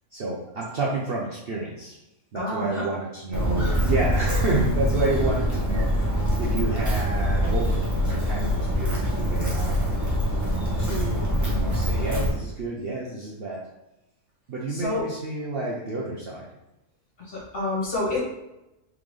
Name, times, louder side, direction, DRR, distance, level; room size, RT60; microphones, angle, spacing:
voice 1, 0.1-1.9 2.3-6.1 6.4-9.8 10.8-13.6 14.5-16.5, right 3 dB, 55° right, -4 dB, 0.7 m, -30 dB
voice 2, 2.3-2.8 14.7-15.0 17.2-18.2, left 2 dB, 40° left, -6 dB, 1.6 m, -28 dB
Walk footsteps, 3.3-12.3, equal, 15° right, 0.8 m, -24 dB
3.8 x 3.5 x 3.2 m, 0.94 s
omnidirectional pair, 1.5 m